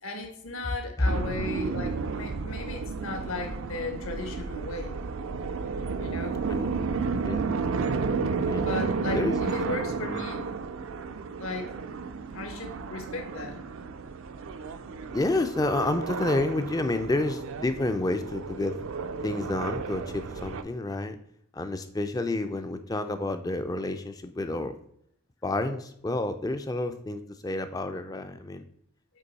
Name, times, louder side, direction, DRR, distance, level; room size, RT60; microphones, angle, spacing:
voice 1, 0.0-5.0 6.0-6.4 8.6-10.5 11.4-11.7 12.3-13.6, left 3 dB, 70° left, 4 dB, 1.1 m, -36 dB
sound 1, 1.1-20.6, right 4 dB, 65° right, 0.4 m, -32 dB
voice 2, 15.1-18.8 19.2-21.2 21.5-24.7 25.4-28.6, left 2 dB, 15° left, 9 dB, 0.3 m, -29 dB
8.2 x 3.0 x 4.0 m, 0.71 s
head